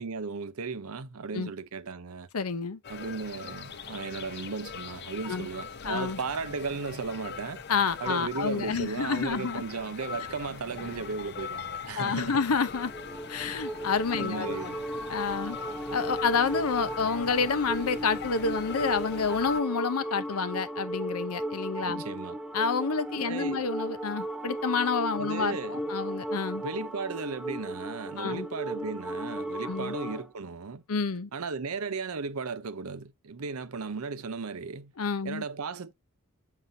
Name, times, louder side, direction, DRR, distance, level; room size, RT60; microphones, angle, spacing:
voice 1, 0.0-2.3 2.9-7.6 8.0-12.4 14.2-14.8 21.9-22.4 23.2-23.7 25.2-25.8 26.6-30.8 31.3-34.9 35.2-35.9, right 4 dB, 80° right, 0.7 m, -36 dB
voice 2, 2.3-2.8 5.3-5.5 5.8-6.2 7.7-9.6 11.9-12.9 13.3-14.5 15.1-15.6 15.9-22.0 22.5-26.6 28.2-28.5 29.6-29.9 30.9-31.3 35.0-35.4, left 5 dB, 85° left, 0.7 m, -29 dB
sound 1, 2.8-19.6, left 6 dB, 50° left, 0.6 m, -41 dB
sound 2, 12.7-30.3, right 1 dB, 5° right, 0.4 m, -36 dB
6.8 x 5.4 x 2.6 m
head